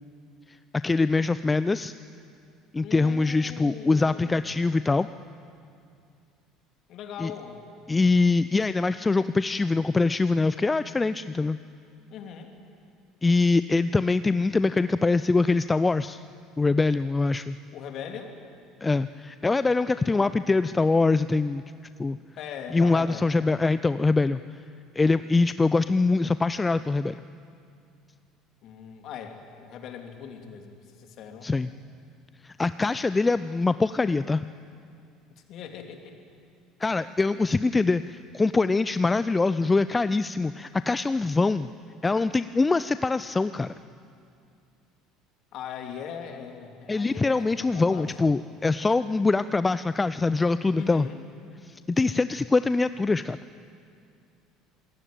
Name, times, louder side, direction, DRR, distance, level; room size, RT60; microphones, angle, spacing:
voice 1, 0.5-1.9 2.7-5.1 7.2-7.3 7.9-11.6 13.2-16.2 16.6-17.6 18.8-21.6 22.0-22.2 22.7-24.4 24.9-27.2 31.4-31.7 32.4-34.4 36.8-41.7 42.0-43.7 46.9-51.1 51.6-53.4, left 3 dB, 20° left, 14 dB, 0.6 m, -23 dB
voice 2, 2.8-4.5 6.9-7.6 12.1-12.5 17.7-18.4 19.8-20.6 22.4-23.4 28.6-31.5 35.5-36.1 45.5-48.3 50.7-51.2, left 7 dB, 50° left, 4 dB, 3.3 m, -40 dB
27.0 x 21.5 x 9.2 m, 2.4 s
figure-of-eight pair, 60°, 0 cm